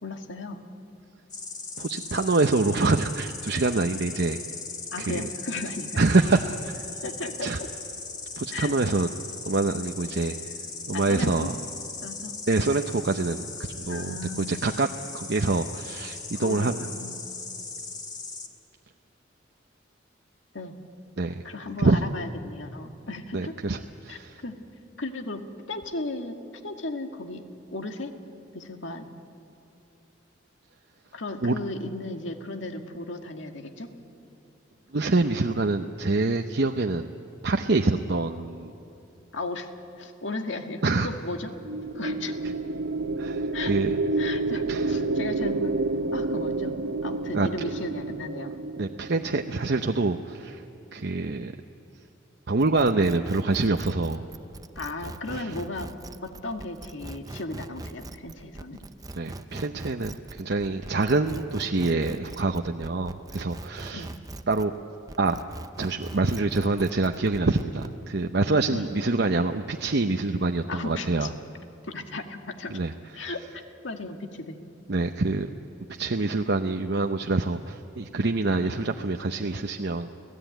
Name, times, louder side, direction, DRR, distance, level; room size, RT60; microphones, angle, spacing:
voice 1, 0.0-0.6 4.9-6.0 7.0-7.7 8.5-8.7 10.9-11.5 12.0-12.4 13.9-14.7 16.4-17.1 20.5-20.8 21.4-23.5 24.1-24.6 25.0-26.4 26.6-28.1 28.5-29.1 31.1-33.9 39.3-39.7 40.0-41.5 41.9-42.4 43.5-43.7 44.2-45.8 46.1-48.6 54.8-55.9 56.2-58.9 63.9-64.2 68.7-68.8 70.7-71.3 71.8-72.8 73.1-73.4 73.8-74.6 78.6-78.7, left 2 dB, 75° left, 4 dB, 1.9 m, -35 dB
Insect, 1.3-18.5, left 4 dB, 20° left, 1.8 m, -38 dB
voice 2, 1.8-4.4 5.0-5.3 6.0-6.8 7.4-7.6 8.4-9.1 9.5-10.5 10.9-11.5 12.5-13.5 13.8-14.9 15.1-16.7 21.2-21.4 21.8-22.0 23.3-24.4 31.4-31.6 34.9-37.1 37.4-38.7 40.8-41.1 43.2-44.0 44.7-45.0 47.3-47.7 48.8-50.6 50.9-51.5 52.5-54.2 55.3-55.5 59.2-64.1 64.5-64.7 65.2-65.4 65.8-71.3 72.7-73.3 74.9-75.5 75.9-80.1, right 3 dB, 60° right, 5 dB, 0.8 m, -26 dB
sound 1, 41.5-49.9, right 3 dB, 85° right, 0.8 m, -29 dB
sound 2, 52.6-64.8 65.1-68.0, right 2 dB, 20° right, 0.5 m, -41 dB
29.5 x 17.0 x 9.2 m, 2.9 s
head